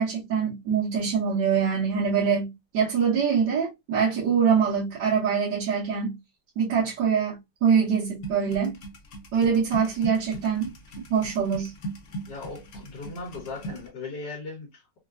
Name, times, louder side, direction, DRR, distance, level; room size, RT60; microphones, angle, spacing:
voice 1, 0.0-6.2 6.6-8.8 9.3-10.7 11.1-11.7, right 6 dB, 85° right, 1.7 m, -24 dB
sound 1, 8.2-13.9, right 2 dB, 55° left, 1.0 m, -39 dB
voice 2, 12.3-15.0, left 3 dB, 70° left, 1.8 m, -38 dB
4.3 x 2.1 x 2.4 m
omnidirectional pair, 2.0 m